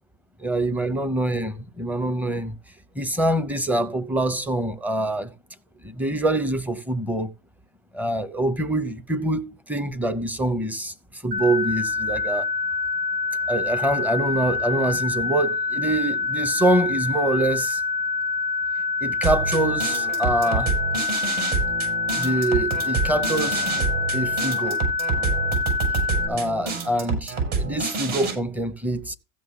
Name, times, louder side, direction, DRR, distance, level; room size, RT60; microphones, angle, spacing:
voice 1, 0.4-2.6 3.0-5.3 5.8-7.3 7.9-12.5 13.5-17.8 19.0-20.7 22.2-23.7 24.1-24.8 26.3-29.1, right 1 dB, 5° right, 0.6 m, -25 dB
sound 1, 11.3-26.3, left 4 dB, 80° right, 2.7 m, -26 dB
sound 2, 19.2-28.3, right 4 dB, 55° right, 7.6 m, -27 dB
15.5 x 6.3 x 3.7 m
supercardioid pair, 115°, 46 cm